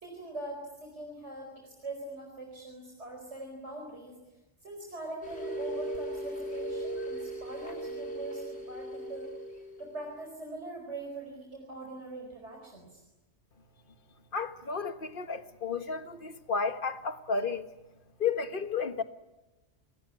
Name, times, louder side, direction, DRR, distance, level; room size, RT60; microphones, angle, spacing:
voice 1, 0.0-9.3 9.8-13.0, right 2 dB, 75° right, 5.0 m, -42 dB
sound 1, 5.2-10.1, right 1 dB, 65° left, 3.8 m, -38 dB
voice 2, 14.3-17.7 18.2-19.0, left 5 dB, 50° left, 1.6 m, -32 dB
27.5 x 19.5 x 9.8 m
omnidirectional pair, 1.2 m